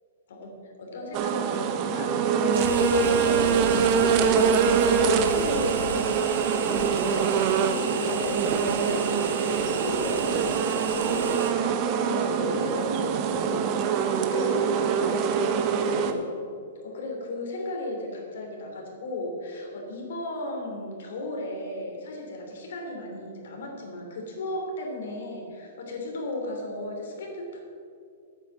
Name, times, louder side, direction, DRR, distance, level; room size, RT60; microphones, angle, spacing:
voice 1, 0.3-11.4 12.0-13.6 14.0-16.2 16.8-27.6, left 1 dB, 70° left, 1 dB, 3.0 m, -35 dB
sound 1, 1.1-16.1, right 6 dB, 30° right, 0.8 m, -24 dB
sound 2, 2.5-11.5, right 5 dB, 75° right, 1.3 m, -34 dB
9.1 x 8.0 x 7.3 m, 2.4 s
hypercardioid pair, 155°, 0 cm